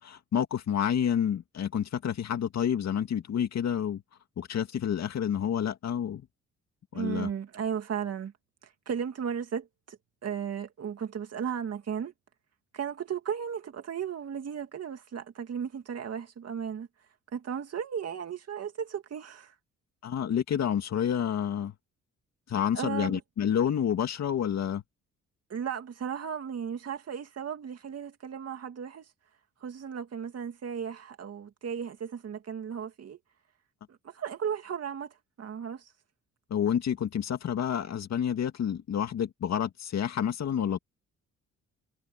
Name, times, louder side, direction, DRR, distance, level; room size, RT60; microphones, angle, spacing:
voice 1, 0.0-4.0 4.4-6.3 6.9-7.3 20.0-21.7 22.5-24.8 36.5-40.8, left 9 dB, 60° left, 2.4 m, -29 dB
voice 2, 6.9-8.3 8.6-12.1 12.7-16.9 17.3-19.5 22.7-23.2 25.5-29.1 29.6-33.2 33.9-35.9, right 7 dB, 55° right, 2.4 m, -35 dB
cardioid pair, 80°, 30 cm